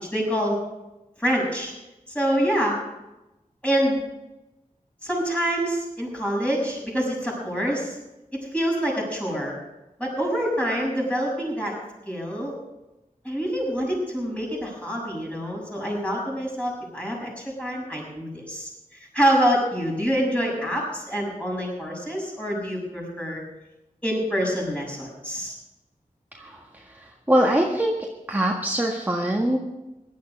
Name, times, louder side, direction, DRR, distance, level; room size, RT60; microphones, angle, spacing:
voice 1, 0.1-0.6 1.2-1.7 2.1-2.7 3.6-4.0 5.0-8.0 8.3-9.6 10.0-11.7 12.0-12.5 13.2-23.4 24.0-25.5, equal, 10° left, -3 dB, 6.8 m, -26 dB
voice 2, 26.3-27.9 28.3-29.7, right 1 dB, 10° right, -1 dB, 1.6 m, -23 dB
16.5 x 11.5 x 5.5 m, 1.0 s
wide cardioid pair, 75°, 14 cm